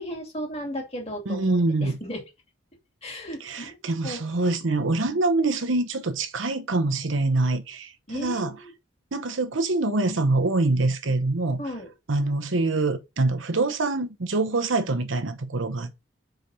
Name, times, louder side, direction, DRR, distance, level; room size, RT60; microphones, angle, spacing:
voice 1, 0.0-2.2 3.0-3.8 4.0-4.2 8.1-8.7 11.6-11.9, equal, 30° left, 2.4 m, -35 dB
voice 2, 1.3-2.0 3.4-8.5 9.1-11.6 12.1-16.1, right 2 dB, 85° right, 0.9 m, -25 dB
5.0 x 4.6 x 5.4 m
head